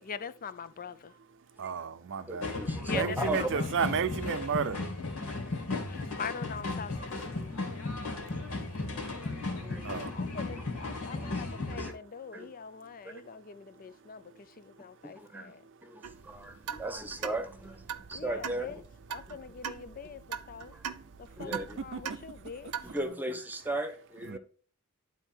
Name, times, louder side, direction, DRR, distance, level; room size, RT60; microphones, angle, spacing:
voice 1, 0.1-1.1 2.8-3.3 5.9-7.5 10.1-14.2 14.8-15.6 18.1-18.8 19.1-20.2 20.5-20.7 21.4-22.7, left 6 dB, 40° left, 0.5 m, -42 dB
voice 2, 1.6-2.5 2.9-4.8 9.8-10.1 21.9-22.0 24.3-24.4, right 6 dB, 60° right, 0.6 m, -32 dB
voice 3, 2.3-3.5 5.3-5.4 7.2-7.6 8.0-8.3 8.9-10.0 10.5-10.6 11.1-11.4 11.7-11.9 12.3-12.5 13.0-13.1 15.0-15.6 15.8-18.8 19.3-19.4 20.7-20.8 21.4-21.8 22.8-24.4, right 2 dB, 10° right, 1.1 m, -38 dB
sound 1, 2.4-11.9, left 3 dB, 75° left, 2.5 m, -35 dB
sound 2, 16.0-23.0, right 7 dB, 90° right, 0.8 m, -42 dB
11.0 x 4.2 x 4.5 m
head